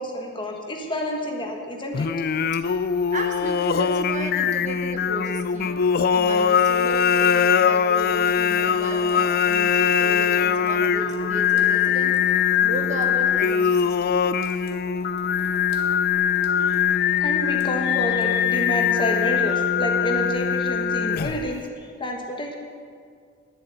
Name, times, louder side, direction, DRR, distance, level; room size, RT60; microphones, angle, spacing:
voice 1, 0.0-2.1 2.4-2.5 16.6-16.8 17.2-21.6 22.0-22.6, equal, 25° left, 1 dB, 1.4 m, -29 dB
Singing, 1.9-21.5, left 7 dB, 45° left, 0.3 m, -22 dB
sound 1, 2.7-9.5 9.8-13.4 14.0-14.2, left 4 dB, 65° left, 0.8 m, -44 dB
voice 2, 3.1-5.8 6.1-14.2, right 1 dB, 35° right, 3 dB, 1.1 m, -34 dB
Water tap faucet / Sink (filling or washing) / Drip, 8.0-18.8, equal, 75° right, 1.7 m, -43 dB
11.0 x 7.7 x 9.3 m, 2.1 s
head